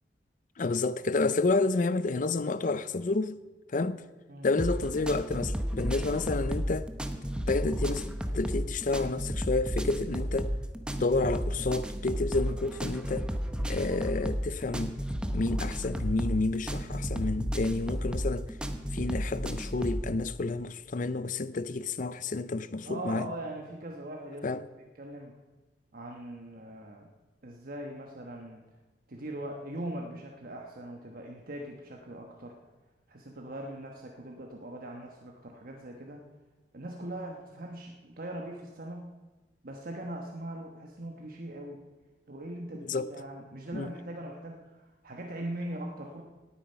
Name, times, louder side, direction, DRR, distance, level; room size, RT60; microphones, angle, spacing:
voice 1, 0.6-3.4 3.7-4.0 4.4-6.9 7.5-10.5 11.0-13.3 13.7-15.0 15.3-18.5 18.9-23.3 24.4-24.6 42.8-43.1 43.7-43.9, left 3 dB, 50° left, 0.6 m, -30 dB
sound 1, 4.6-20.1, equal, 5° right, 0.9 m, -33 dB
voice 2, 22.8-24.6 24.9-25.4 25.9-27.1 27.4-28.6 29.1-32.6 33.1-36.2 36.7-39.1 39.6-41.8 42.3-46.2, right 1 dB, 55° right, 1.3 m, -41 dB
18.0 x 8.9 x 5.7 m
head